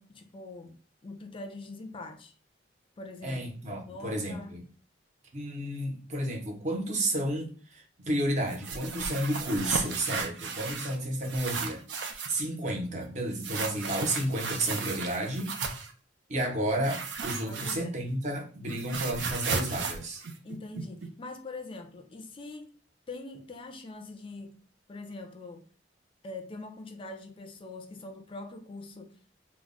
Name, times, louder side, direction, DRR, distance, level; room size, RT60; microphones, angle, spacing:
voice 1, 0.0-2.3 3.0-4.6 17.5-18.0 20.4-22.7 23.1-24.6 24.9-25.7 26.2-29.2, left 2 dB, 30° left, 0.4 m, -43 dB
voice 2, 3.2-4.6 5.3-11.8 12.3-15.5 16.3-20.2, right 1 dB, 40° right, 0.7 m, -31 dB
sound 1, 8.5-11.0 11.2-12.4 13.4-15.9 16.8-18.1 18.4-21.1, right 5 dB, 75° right, 0.4 m, -35 dB
2.2 x 2.0 x 3.6 m
head